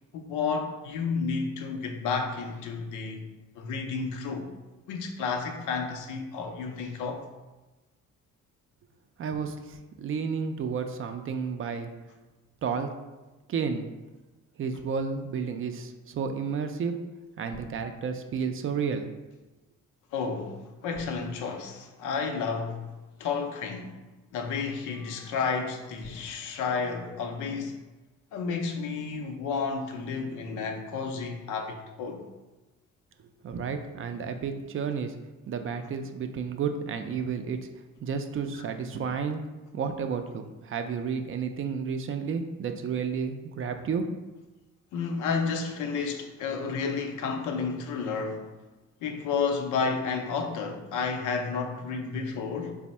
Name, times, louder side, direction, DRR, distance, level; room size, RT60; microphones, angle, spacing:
voice 1, 0.1-3.2 3.5-4.5 4.9-7.3 20.1-22.9 23.2-24.0 24.3-27.8 28.3-32.2 38.5-38.6 44.9-48.5 49.0-52.8, left 5 dB, 90° left, 0.5 m, -31 dB
voice 2, 9.2-11.9 12.6-12.9 13.5-13.9 14.6-16.9 17.4-19.1 33.4-35.1 35.5-37.7 38.0-44.1, right 6 dB, 45° right, 0.4 m, -31 dB
sound 1, 17.5-18.5 20.9-22.6 23.8-23.9 26.0-27.7, left 2 dB, 50° left, 0.6 m, -52 dB
3.4 x 2.1 x 4.1 m
cardioid pair, 90°, 30 cm